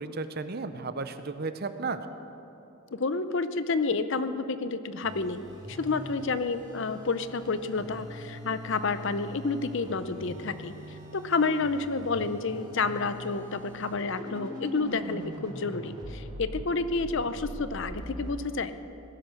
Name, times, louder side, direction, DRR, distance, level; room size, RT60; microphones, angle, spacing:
voice 1, 0.0-2.0, right 4 dB, 45° right, 10 dB, 0.7 m, -34 dB
voice 2, 2.9-5.4 5.7-10.7 11.1-18.7, left 4 dB, 55° left, 12 dB, 0.6 m, -30 dB
sound 1, 5.0-18.3, equal, 20° right, 2.0 m, -42 dB
18.5 x 11.0 x 6.5 m, 2.9 s
head